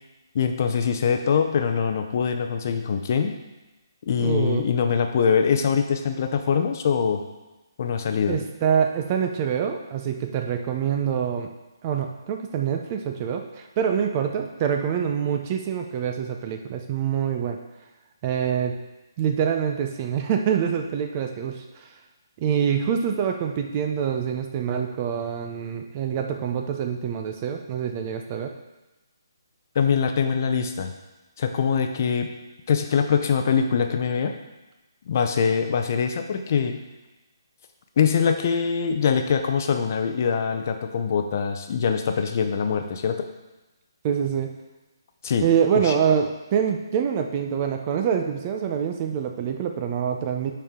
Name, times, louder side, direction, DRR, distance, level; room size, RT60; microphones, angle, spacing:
voice 1, 0.3-3.4 4.1-7.2 7.8-8.4 29.7-30.9 31.4-32.3 32.7-34.3 35.1-36.8 38.0-43.2 45.2-45.5 45.7-46.0, left 6 dB, 40° left, 6 dB, 0.6 m, -23 dB
voice 2, 4.2-4.7 8.3-11.5 11.8-17.6 18.2-18.7 19.2-21.6 22.4-28.5 44.0-44.5 45.4-50.5, right 8 dB, 25° right, 4 dB, 0.5 m, -25 dB
10.5 x 4.4 x 3.7 m, 1.1 s
hypercardioid pair, 165°, 2 cm